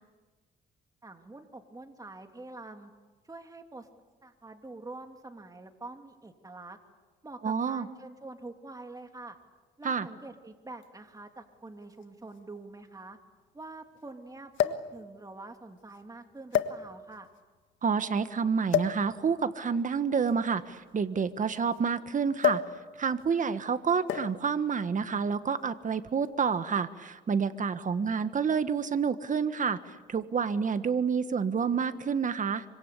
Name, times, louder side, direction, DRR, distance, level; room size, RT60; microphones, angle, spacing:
voice 1, 1.0-2.9 3.2-3.9 4.2-6.8 7.2-9.4 9.8-13.2 13.5-17.3, right 2 dB, 20° right, 5 dB, 2.9 m, -46 dB
voice 2, 7.4-7.9 9.8-10.1 17.8-22.6 23.0-32.6, right 6 dB, 40° right, 11 dB, 1.5 m, -29 dB
sound 1, 10.8-10.9 12.0-12.1 12.4-12.5 14.5-15.0 15.8-16.0 16.5-17.2 18.7-19.0 20.2-21.8 22.4-22.8 23.0-23.3 24.1-24.5 25.4-25.7, left 10 dB, 75° left, 1.6 m, -29 dB
26.0 x 25.0 x 8.4 m, 1.3 s
cardioid pair, 90°, 20 cm